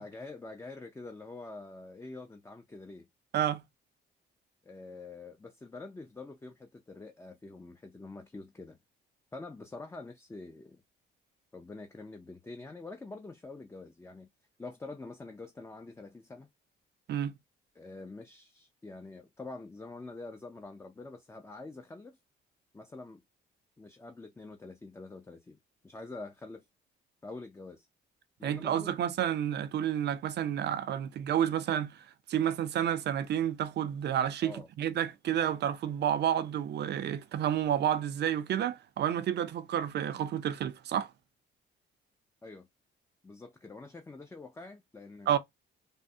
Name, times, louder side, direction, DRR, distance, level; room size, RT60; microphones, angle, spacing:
voice 1, 0.0-3.1 4.6-8.8 9.3-10.8 11.5-14.3 14.6-16.5 17.8-22.2 22.7-23.2 23.8-25.6 25.8-26.6 27.2-27.9 28.4-28.9 34.4-34.7 42.4-42.7 43.2-45.3, left 3 dB, 15° left, 0.4 m, -46 dB
voice 2, 28.4-41.1 45.3-45.4, right 10 dB, 60° right, 0.5 m, -30 dB
3.4 x 2.0 x 2.6 m
cardioid pair, 90°, 20 cm